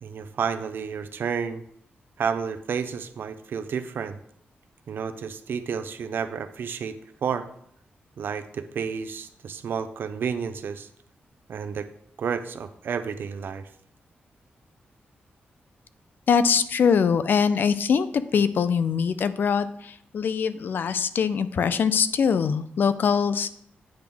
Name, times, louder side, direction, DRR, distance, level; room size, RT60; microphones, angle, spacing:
voice 1, 0.0-1.6 2.2-4.2 4.9-7.4 8.2-10.9 11.5-11.9 12.2-13.6, right 6 dB, 65° right, 10 dB, 0.6 m, -31 dB
voice 2, 16.3-23.5, left 6 dB, 60° left, 13 dB, 0.4 m, -23 dB
8.7 x 3.5 x 6.0 m, 0.69 s
wide cardioid pair, 150°, 4 cm